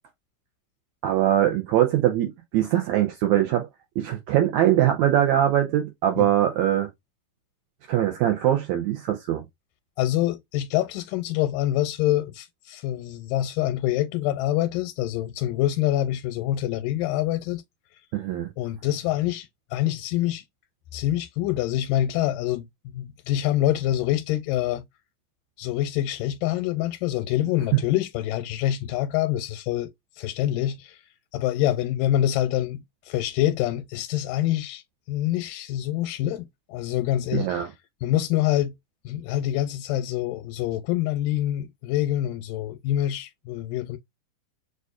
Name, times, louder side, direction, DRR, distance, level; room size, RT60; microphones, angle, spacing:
voice 1, 1.0-3.7 4.0-6.9 7.9-9.4 18.1-18.5 27.7-27.8 37.3-37.7, right 12 dB, 75° right, 1.7 m, -22 dB
voice 2, 10.0-17.6 18.6-20.4 20.9-22.7 22.9-24.8 25.6-31.0 31.3-34.8 35.1-37.6 38.0-38.7 39.1-44.0, left 13 dB, 85° left, 2.2 m, -26 dB
6.5 x 2.5 x 2.3 m
omnidirectional pair, 3.8 m